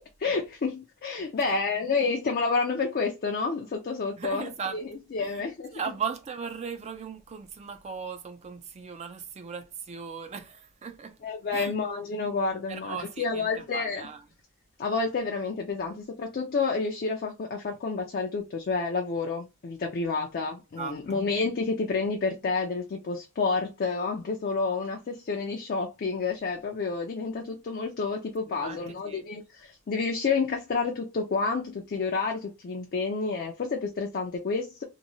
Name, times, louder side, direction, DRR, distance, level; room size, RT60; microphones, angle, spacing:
voice 1, 0.2-4.8 5.1-5.7 11.2-14.1 14.8-34.8, left 4 dB, 45° left, 0.4 m, -29 dB
voice 2, 4.2-4.8 5.2-5.4 5.7-11.2 11.5-11.7 12.7-14.2 20.7-21.0 28.5-29.2, right 6 dB, 30° right, 0.4 m, -37 dB
2.9 x 2.1 x 2.6 m
head